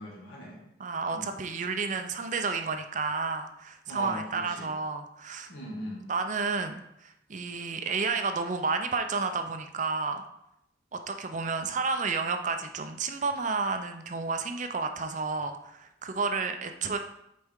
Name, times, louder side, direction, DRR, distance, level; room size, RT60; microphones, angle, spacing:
voice 1, 0.0-0.6 1.1-1.4 3.9-4.7 5.5-6.1, equal, 70° left, -4 dB, 2.1 m, -39 dB
voice 2, 0.8-5.5 6.1-10.2 10.9-17.0, right 4 dB, 40° right, 6 dB, 0.5 m, -31 dB
7.9 x 4.2 x 3.6 m, 0.81 s
head